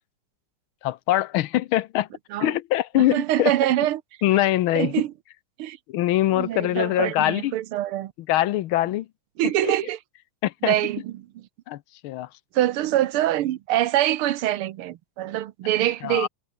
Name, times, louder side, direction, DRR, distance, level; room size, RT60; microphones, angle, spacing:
voice 1, 0.8-2.1 2.4-3.5 4.2-4.9 5.9-7.5 8.3-9.1 9.6-9.7 10.4-10.7 11.7-12.3 16.0-16.3, left 14 dB, 75° left, 1.5 m, -23 dB
voice 2, 3.0-4.0 4.8-5.1 5.6-5.8 6.3-8.1 9.4-10.0 10.6-11.4 12.6-16.3, right 13 dB, 90° right, 1.8 m, -24 dB
omnidirectional pair, 2.3 m